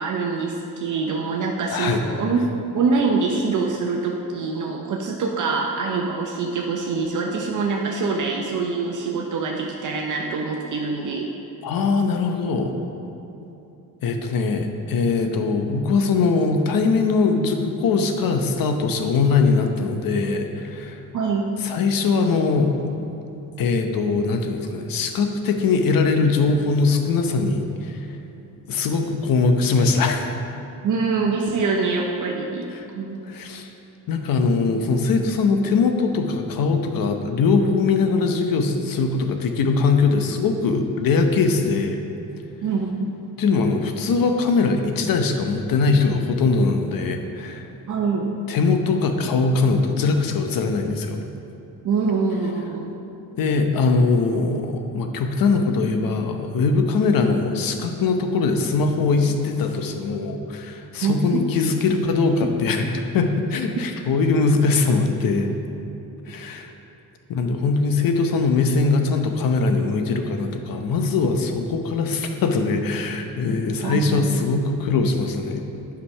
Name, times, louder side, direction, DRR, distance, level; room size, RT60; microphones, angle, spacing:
voice 1, 0.0-2.4 2.7-11.3 21.1-21.5 30.8-32.7 32.9-33.2 42.6-43.1 47.9-48.3 51.8-52.8 61.0-61.2 73.8-74.3, right 4 dB, 55° right, 0 dB, 0.8 m, -24 dB
voice 2, 1.7-2.0 11.6-12.7 14.0-21.0 21.6-23.1 23.6-28.1 28.7-30.3 32.7-32.9 33.3-33.7 34.1-42.0 43.4-47.7 48.5-51.2 53.4-65.5 66.3-66.7 67.3-75.8, left 4 dB, 70° left, 5 dB, 0.9 m, -21 dB
8.4 x 5.2 x 5.6 m, 3.0 s
cardioid pair, 125°, 36 cm